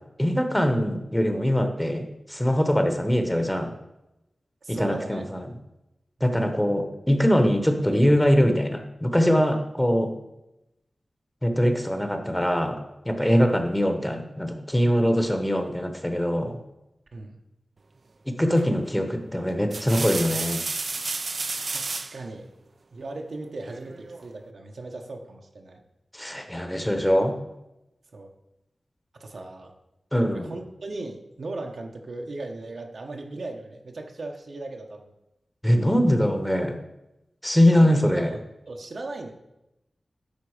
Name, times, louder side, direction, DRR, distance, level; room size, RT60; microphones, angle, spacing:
voice 1, 0.2-3.7 4.7-5.5 6.2-10.1 11.4-16.6 18.3-20.6 26.1-27.4 30.1-30.5 35.6-36.8 37.4-38.3, equal, 10° left, 5 dB, 0.9 m, -22 dB
voice 2, 4.6-5.2 17.1-17.4 21.6-22.5 22.9-25.8 28.1-28.3 29.2-29.7 30.3-35.1 37.7-38.4 38.7-39.3, right 2 dB, 75° right, 3 dB, 1.0 m, -37 dB
sound 1, 18.6-18.9 19.5-22.2 23.7-24.3, right 3 dB, 55° right, 0.4 m, -31 dB
10.5 x 4.0 x 4.9 m, 0.92 s
wide cardioid pair, 85°, 0 cm